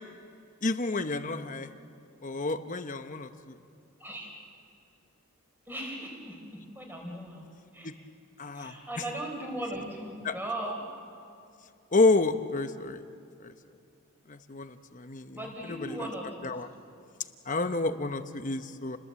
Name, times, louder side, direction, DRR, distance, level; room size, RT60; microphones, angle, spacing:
voice 1, 0.6-1.7 2.2-3.6 7.8-7.9 8.4-8.8 10.2-10.3 11.9-13.0 13.4-13.5 14.3-16.1 16.4-16.7 17.5-19.0, left 3 dB, 35° left, 9 dB, 0.9 m, -29 dB
voice 2, 5.7-7.4 7.7-7.9 8.5-10.8 15.3-16.5, right 1 dB, 10° right, 0 dB, 4.3 m, -38 dB
29.5 x 20.5 x 7.6 m, 2.4 s
head